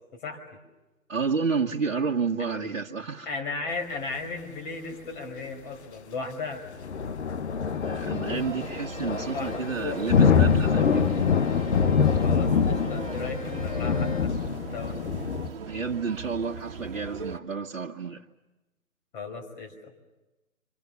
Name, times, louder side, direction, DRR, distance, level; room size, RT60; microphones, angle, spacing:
voice 1, 1.1-3.3 7.8-11.2 15.6-18.2, right 5 dB, 60° right, 1.6 m, -30 dB
voice 2, 3.3-6.6 9.3-9.5 9.8-10.0 12.2-14.3 14.7-15.0 19.1-19.9, left 4 dB, 35° left, 5.4 m, -35 dB
sound 1, 6.7-15.5, left 6 dB, 50° left, 1.1 m, -25 dB
Bowed string instrument, 7.6-14.4, left 5 dB, 65° left, 3.9 m, -44 dB
sound 2, 8.3-17.4, right 5 dB, 40° right, 1.8 m, -40 dB
28.5 x 26.0 x 7.1 m
hypercardioid pair, 155°, 42 cm